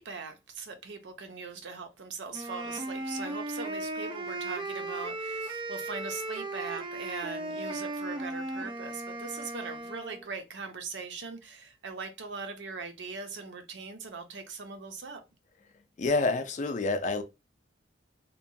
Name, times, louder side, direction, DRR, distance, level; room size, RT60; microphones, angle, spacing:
voice 1, 0.0-15.2, right 4 dB, 75° right, 0.6 m, -40 dB
Wind instrument woodwind instrument, 2.3-10.2, right 2 dB, 25° right, 0.4 m, -36 dB
voice 2, 16.0-17.2, left 3 dB, 45° left, 0.4 m, -28 dB
2.9 x 2.2 x 2.6 m
head